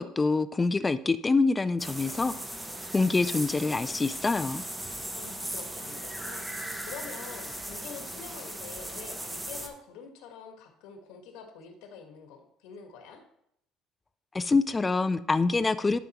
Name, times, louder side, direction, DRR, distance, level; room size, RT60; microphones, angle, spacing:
voice 1, 0.0-2.3 2.9-4.6 14.3-16.0, left 3 dB, 15° left, 12 dB, 0.3 m, -25 dB
sound 1, 1.8-9.7, right 1 dB, 5° right, 0.7 m, -38 dB
voice 2, 5.1-13.2, left 6 dB, 85° left, 4 dB, 1.4 m, -46 dB
11.5 x 5.0 x 3.0 m, 0.76 s
cardioid pair, 160°, 0 cm